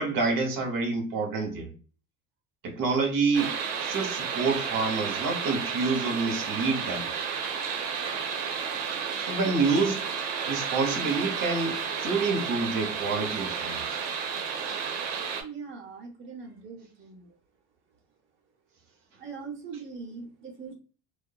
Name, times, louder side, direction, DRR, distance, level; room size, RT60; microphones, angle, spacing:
voice 1, 0.0-1.7 2.6-7.1 9.2-10.0 10.5-14.1, right 4 dB, 55° right, 1.0 m, -28 dB
sound 1, 3.3-15.4, right 6 dB, 90° right, 0.7 m, -32 dB
voice 2, 15.4-17.3 19.2-20.7, right 5 dB, 30° right, 0.8 m, -41 dB
2.6 x 2.4 x 2.3 m
supercardioid pair, 85°, 40 cm